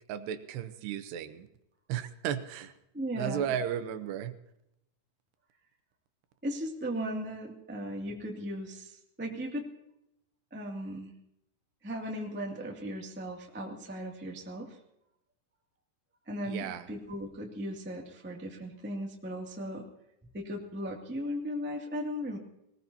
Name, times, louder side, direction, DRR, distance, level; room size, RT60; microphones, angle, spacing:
voice 1, 0.1-1.5 1.9-2.7 3.1-4.3 16.4-16.9, right 9 dB, 80° right, 10 dB, 2.9 m, -34 dB
voice 2, 2.9-3.4 6.4-9.7 10.5-11.1 11.8-14.8 16.3-19.8 20.3-22.4, equal, 15° right, 0 dB, 0.4 m, -37 dB
21.0 x 19.5 x 2.8 m, 0.83 s
omnidirectional pair, 4.9 m